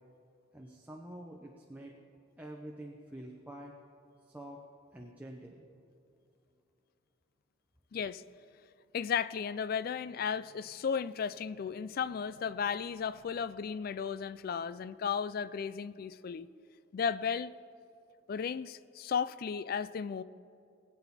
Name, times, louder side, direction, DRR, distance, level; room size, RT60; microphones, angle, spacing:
voice 1, 0.5-1.9 2.4-3.7 4.3-4.6 4.9-5.7, right 1 dB, 10° right, 0 dB, 0.7 m, -47 dB
voice 2, 7.9-8.2 8.9-16.5 16.9-17.5 18.3-20.2, left 6 dB, 50° left, 16 dB, 0.3 m, -34 dB
21.0 x 8.8 x 4.2 m, 2.5 s
head